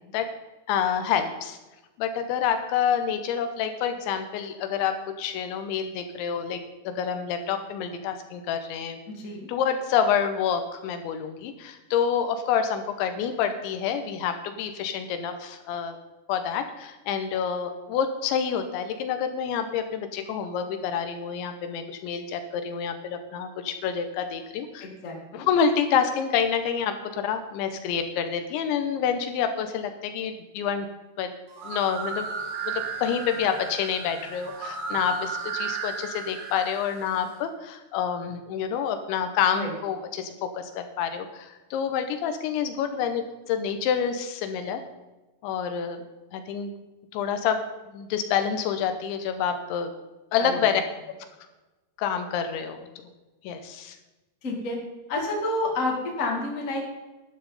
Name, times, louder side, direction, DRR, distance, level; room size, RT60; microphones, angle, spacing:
voice 1, 0.7-1.6 2.0-9.0 9.5-16.0 16.3-24.9 25.3-30.9 31.2-31.3 31.6-32.3 32.7-44.8 45.4-46.0 46.3-46.7 47.1-47.6 47.9-49.9 50.3-50.8 52.0-52.9 53.4-54.0, left 7 dB, 80° left, 8 dB, 3.1 m, -28 dB
voice 2, 9.1-9.5 24.8-25.5 39.5-39.7 50.4-50.6 54.4-54.8 55.1-56.8, left 2 dB, 25° left, -1 dB, 1.8 m, -29 dB
sound 1, 31.5-37.3, right 5 dB, 80° right, 4.6 m, -34 dB
12.0 x 12.0 x 4.1 m, 1.1 s
omnidirectional pair, 5.4 m